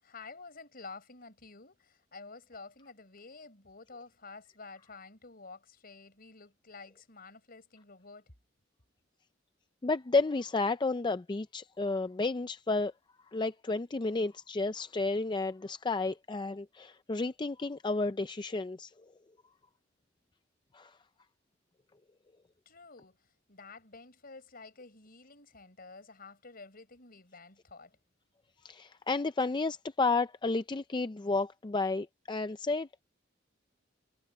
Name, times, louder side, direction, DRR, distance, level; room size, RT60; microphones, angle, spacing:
voice 1, 0.0-8.3 22.7-28.0, left 4 dB, 50° left, 5.2 m, -50 dB
voice 2, 9.8-12.9 13.3-18.9 20.7-20.9 28.6-33.0, left 3 dB, 25° left, 0.4 m, -31 dB
head